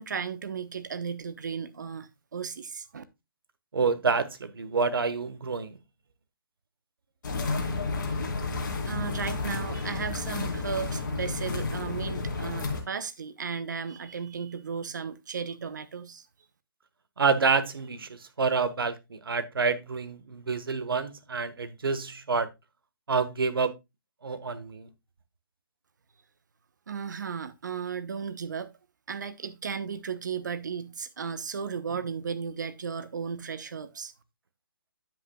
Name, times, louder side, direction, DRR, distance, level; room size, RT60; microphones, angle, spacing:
voice 1, 0.0-3.0 8.4-8.6 8.9-16.3 26.9-28.7 29.1-34.1, right 6 dB, 50° right, 1.1 m, -35 dB
voice 2, 3.7-5.8 17.2-22.5 23.1-23.7 24.2-24.9, right 4 dB, 75° right, 1.4 m, -28 dB
sound 1, 7.2-12.8, left 3 dB, 55° left, 2.6 m, -31 dB
9.6 x 8.2 x 2.3 m
hypercardioid pair, 175°, 12 cm